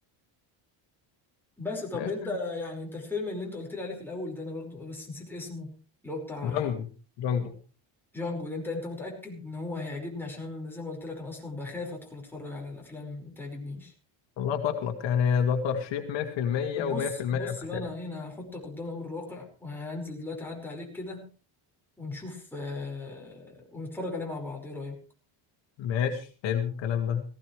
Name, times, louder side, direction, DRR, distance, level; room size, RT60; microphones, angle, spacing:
voice 1, 1.6-5.8 6.0-6.7 8.1-13.9 16.8-21.3 22.0-25.0, left 2 dB, 5° left, -2 dB, 5.3 m, -37 dB
voice 2, 6.5-6.8 7.2-7.5 14.4-17.8 25.8-27.2, left 7 dB, 60° left, 4 dB, 2.4 m, -28 dB
18.0 x 17.0 x 3.3 m, 0.36 s
cardioid pair, 155°, 49 cm